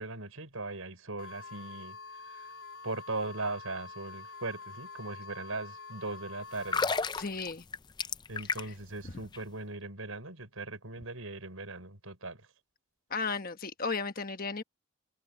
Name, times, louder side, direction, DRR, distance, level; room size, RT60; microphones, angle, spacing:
voice 1, 0.0-2.0 2.3-2.5 2.8-6.9 8.3-12.4, right 2 dB, 75° right, 5.7 m, -39 dB
sound 1, 1.2-7.0, left 4 dB, 75° left, 3.7 m, -47 dB
sound 2, 6.6-8.9 9.2-9.4, left 4 dB, 20° left, 0.4 m, -32 dB
voice 2, 7.1-7.6 8.6-8.7 9.0-9.1 13.1-14.6, left 4 dB, 40° left, 1.2 m, -35 dB
head